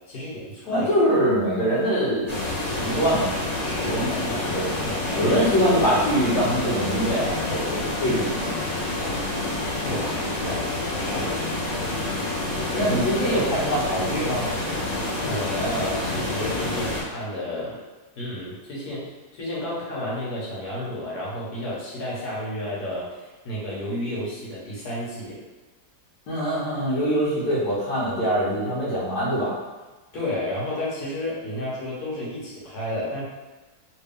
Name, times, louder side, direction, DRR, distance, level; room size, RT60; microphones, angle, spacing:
voice 1, 0.1-0.9 3.6-4.3 4.8-5.5 8.1-8.2 9.8-10.1 11.0-11.5 12.6-12.9 15.3-17.8 18.2-25.4 30.1-33.2, left 1 dB, 70° left, -7 dB, 1.7 m, -31 dB
voice 2, 0.7-4.7 5.2-8.5 8.9-9.1 10.0-10.1 10.4-10.6 11.1-11.2 12.7-14.5 15.0-15.3 26.3-29.6, equal, 90° left, -10 dB, 1.6 m, -24 dB
sound 1, 2.3-17.0, left 2 dB, 30° left, 0.8 m, -28 dB
3.5 x 2.7 x 3.5 m, 1.2 s
omnidirectional pair, 1.8 m